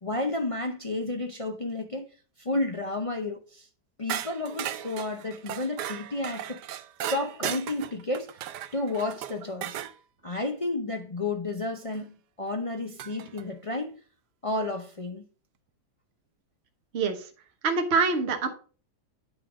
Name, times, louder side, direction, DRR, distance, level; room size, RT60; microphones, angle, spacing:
voice 1, 0.0-2.1 2.4-3.7 4.0-6.6 7.1-8.3 8.7-9.8 10.2-13.9 14.4-15.2, left 2 dB, 45° left, 0.4 m, -31 dB
sound 1, 4.1-9.9 11.9-12.0 13.0-13.4, right 11 dB, 85° right, 1.2 m, -36 dB
voice 2, 16.9-17.2 17.6-18.5, right 4 dB, 45° right, 1.2 m, -25 dB
9.1 x 3.8 x 4.9 m
omnidirectional pair, 1.8 m